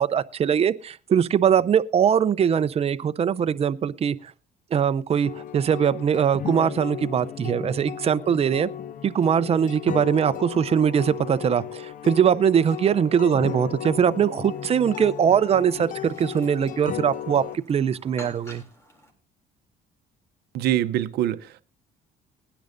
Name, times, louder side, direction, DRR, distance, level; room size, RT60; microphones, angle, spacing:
voice 1, 0.0-4.2 4.7-8.7 9.0-18.6, right 8 dB, 35° right, 0.6 m, -22 dB
sound 1, 5.2-17.6, left 10 dB, 55° left, 0.7 m, -35 dB
Chirp tweet, 14.0-19.1, equal, 15° left, 3.6 m, -50 dB
voice 2, 20.5-21.6, right 12 dB, 70° right, 0.7 m, -24 dB
20.0 x 10.0 x 2.6 m
cardioid pair, 110°, 17 cm